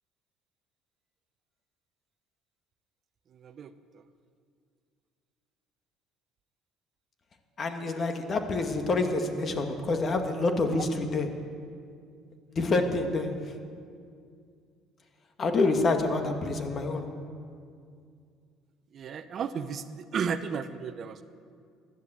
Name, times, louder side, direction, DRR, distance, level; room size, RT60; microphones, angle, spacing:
voice 1, 3.3-4.0 10.7-10.8 16.3-16.4 18.9-21.2, right 6 dB, 50° right, 11 dB, 0.8 m, -34 dB
voice 2, 7.6-11.3 12.5-13.3 15.4-17.1, left 3 dB, 40° left, 5 dB, 1.9 m, -27 dB
15.0 x 11.0 x 7.6 m, 2.3 s
supercardioid pair, 90°, 0 cm